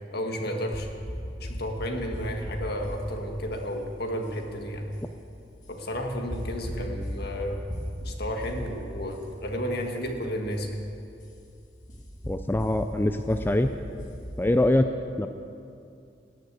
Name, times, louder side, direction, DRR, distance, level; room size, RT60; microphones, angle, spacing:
voice 1, 0.1-0.9 1.4-4.8 5.7-7.6 8.0-10.8, equal, 60° left, 3 dB, 1.7 m, -32 dB
sound 1, 0.7-14.7, equal, 45° left, 2.1 m, -39 dB
voice 2, 12.3-13.7 14.4-14.8 15.2-15.3, left 1 dB, 10° left, 7 dB, 0.4 m, -23 dB
18.5 x 6.6 x 8.3 m, 2.5 s
head